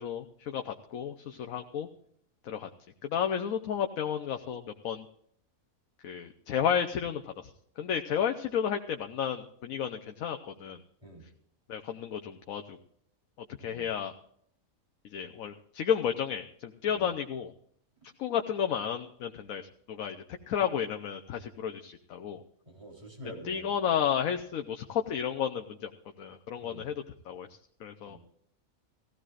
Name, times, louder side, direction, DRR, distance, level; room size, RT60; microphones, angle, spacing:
voice 1, 0.0-1.9 2.4-2.7 3.0-5.0 6.0-7.5 7.8-10.8 11.7-12.8 13.6-14.1 15.0-17.5 18.2-19.6 19.9-22.4 23.5-25.9 26.2-27.5 27.8-28.2, left 8 dB, 85° left, 5 dB, 1.2 m, -32 dB
voice 2, 22.7-23.7 26.6-26.9 28.0-28.2, right 1 dB, 25° right, -2 dB, 4.0 m, -47 dB
18.5 x 15.5 x 2.5 m, 0.69 s
omnidirectional pair, 1.4 m